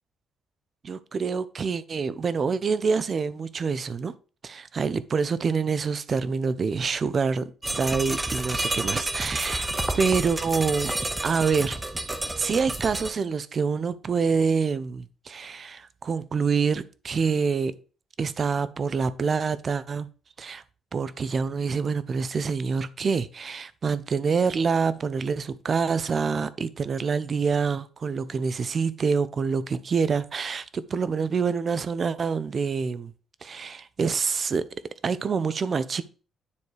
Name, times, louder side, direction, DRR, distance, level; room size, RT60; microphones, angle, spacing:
voice 1, 0.8-4.1 4.4-9.7 9.9-10.9 11.2-11.8 12.4-17.8 18.2-20.1 20.4-20.6 20.9-33.1 33.4-34.7 35.0-36.0, right 5 dB, 45° right, 0.5 m, -26 dB
sound 1, 7.6-13.1, right 2 dB, 15° right, 0.9 m, -30 dB
9.7 x 3.2 x 4.7 m
cardioid pair, 90°, 0 cm